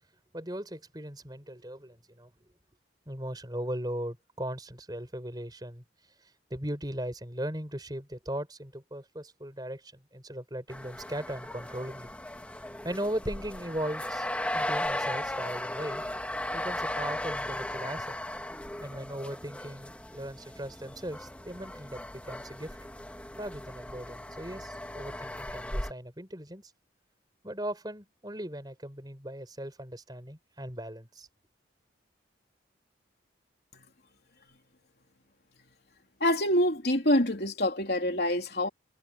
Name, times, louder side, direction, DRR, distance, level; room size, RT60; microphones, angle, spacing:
voice 1, 0.3-2.3 3.1-5.8 6.5-12.1 12.8-16.0 16.5-18.2 18.8-22.8 23.4-26.7 27.4-31.3, right 1 dB, 20° right, 5.3 m, -38 dB
sound 1, 10.7-25.9, left 1 dB, 5° left, 2.1 m, -37 dB
voice 2, 36.2-38.7, left 1 dB, 55° left, 3.8 m, -26 dB
head